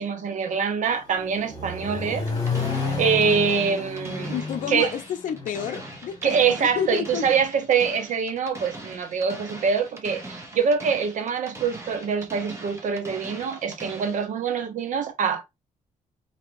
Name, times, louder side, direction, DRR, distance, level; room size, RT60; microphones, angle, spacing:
voice 1, 0.0-2.3 3.0-4.3 4.7-4.9 6.2-15.5, right 6 dB, 65° right, 0.8 m, -24 dB
Accelerating revving vroom, 0.9-6.9, left 4 dB, 25° left, 1.4 m, -31 dB
sound 1, 2.3-14.3, right 2 dB, 20° right, 1.0 m, -41 dB
voice 2, 4.3-7.3, left 8 dB, 70° left, 0.5 m, -30 dB
3.4 x 2.8 x 3.0 m
cardioid pair, 110°, 14 cm